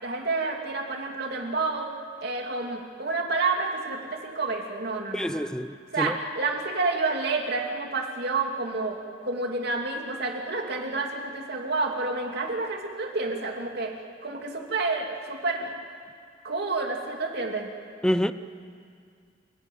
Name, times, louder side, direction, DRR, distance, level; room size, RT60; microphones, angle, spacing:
voice 1, 0.0-5.5 5.9-13.9 14.2-15.7 16.4-17.7, right 3 dB, 60° right, 2 dB, 2.6 m, -29 dB
voice 2, 5.1-6.2 18.0-18.3, equal, 5° left, 12 dB, 0.6 m, -27 dB
29.0 x 16.5 x 9.3 m, 2.2 s
head